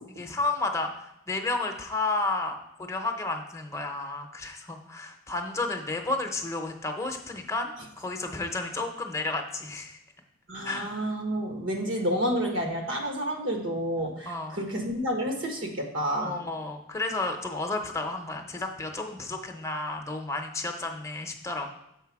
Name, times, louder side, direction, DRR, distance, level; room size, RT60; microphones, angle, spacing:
voice 1, 0.1-10.0 10.6-10.9 14.3-14.6 16.2-21.7, left 2 dB, 15° left, 4 dB, 0.7 m, -32 dB
voice 2, 10.5-16.3, equal, 80° right, 2 dB, 1.4 m, -29 dB
6.7 x 4.5 x 4.7 m, 0.80 s
head